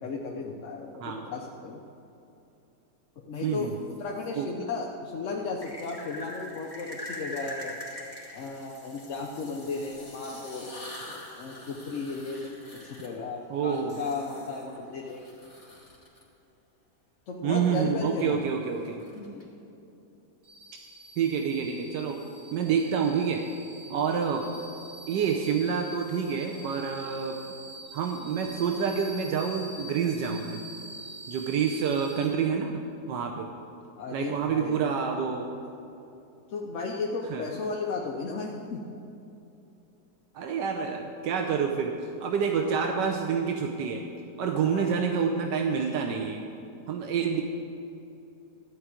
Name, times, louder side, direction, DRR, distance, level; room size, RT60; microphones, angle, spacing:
voice 1, 0.0-1.8 3.3-7.8 8.3-15.2 17.3-18.4 19.1-19.5 34.0-34.8 36.5-38.9 44.6-44.9, left 4 dB, 55° left, -1 dB, 1.0 m, -35 dB
sound 1, 3.3-4.3 5.6-16.2 17.6-19.4, left 1 dB, 20° left, 1.9 m, -44 dB
voice 2, 3.4-3.8 4.3-4.5 13.5-14.0 17.4-19.0 21.2-22.2 22.5-23.4 23.9-24.5 25.1-27.4 27.9-30.6 31.3-32.7 33.1-33.5 34.1-35.6 37.3-37.4 40.3-44.0 44.4-46.4 46.9-47.4, right 6 dB, 90° right, 3 dB, 1.4 m, -28 dB
sound 2, 20.4-32.3, right 1 dB, 65° right, 3.1 m, -45 dB
13.5 x 4.6 x 8.8 m, 2.8 s
omnidirectional pair, 1.8 m